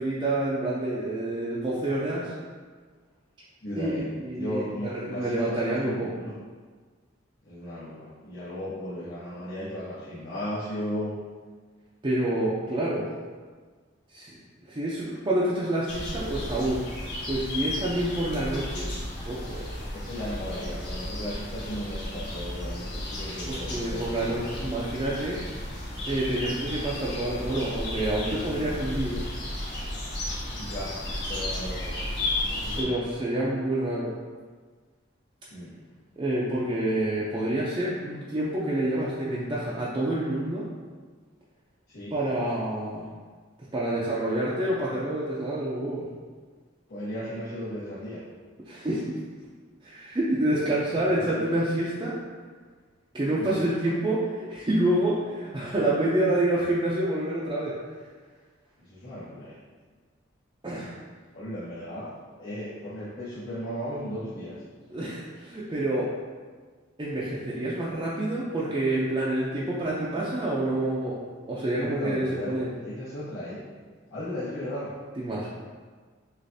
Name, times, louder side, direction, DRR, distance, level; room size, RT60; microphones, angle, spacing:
voice 1, 0.0-2.3 3.8-6.1 12.0-13.1 14.1-14.4 14.7-16.8 17.3-19.0 19.2-19.6 23.5-25.4 26.0-29.2 32.8-34.1 36.2-40.7 42.1-43.1 43.7-46.0 48.6-49.2 49.8-52.1 53.1-57.7 60.6-61.0 64.9-66.1 67.0-71.2 71.5-72.7 75.2-75.5, right 1 dB, 25° right, -7 dB, 0.5 m, -28 dB
voice 2, 3.6-4.1 4.3-6.3 7.4-11.1 19.9-24.6 30.5-30.9 31.3-31.9 32.5-33.0 35.5-35.7 41.9-42.1 46.9-48.2 50.9-51.4 53.4-53.5 58.9-59.5 61.3-62.1 62.4-64.5 71.8-72.5 72.8-73.6 74.1-74.9, equal, 75° left, -12 dB, 1.4 m, -36 dB
sound 1, 15.9-32.8, left 1 dB, 60° left, 1.3 m, -34 dB
6.3 x 2.5 x 2.7 m, 1.5 s
head